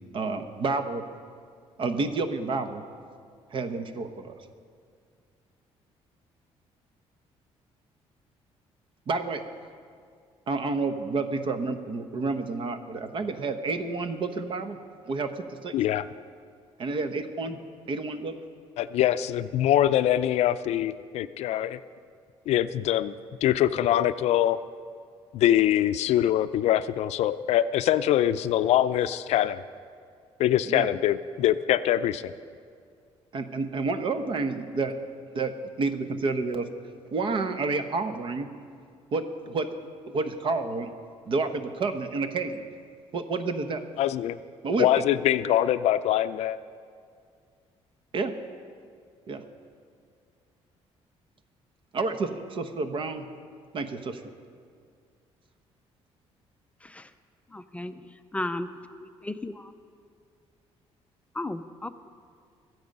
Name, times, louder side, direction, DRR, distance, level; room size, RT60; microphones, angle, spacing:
voice 1, 0.1-1.0 1.8-2.8 3.5-4.4 9.1-9.4 10.5-14.8 15.0-15.3 15.6-15.7 16.8-17.6 17.9-18.4 30.6-30.9 33.3-34.9 35.3-35.5 35.8-36.7 37.1-38.5 39.1-39.7 40.1-40.9 41.3-42.6 43.1-43.8 44.6-45.0 48.1-48.3 49.3-49.4 51.9-53.2 53.7-54.2, right 3 dB, 50° right, 8 dB, 1.0 m, -29 dB
voice 2, 15.7-16.0 18.8-21.8 22.5-23.1 23.4-24.6 25.3-29.6 30.4-32.2 44.0-44.3 44.8-46.6, left 12 dB, 75° left, 14 dB, 0.4 m, -23 dB
voice 3, 57.5-58.0 58.3-58.7 59.0-59.5 61.3-61.9, left 2 dB, 10° left, 9 dB, 0.4 m, -34 dB
22.0 x 8.0 x 5.3 m, 2.2 s
cardioid pair, 130°, 11 cm